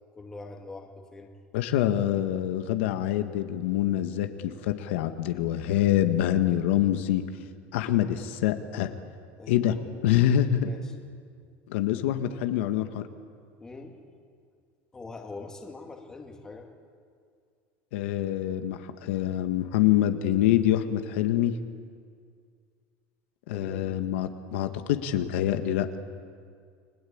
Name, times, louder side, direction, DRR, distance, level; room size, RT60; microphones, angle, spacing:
voice 1, 0.1-1.3 9.4-10.9 13.6-14.0 14.9-16.7 23.5-24.0, left 3 dB, 10° left, 2 dB, 2.1 m, -44 dB
voice 2, 1.5-7.2 7.7-8.9 9.5-9.7 10.0-10.7 11.7-13.0 17.9-21.5 23.5-26.0, left 12 dB, 85° left, 7 dB, 1.7 m, -25 dB
30.0 x 21.0 x 8.8 m, 2.1 s
cardioid pair, 175°, 6 cm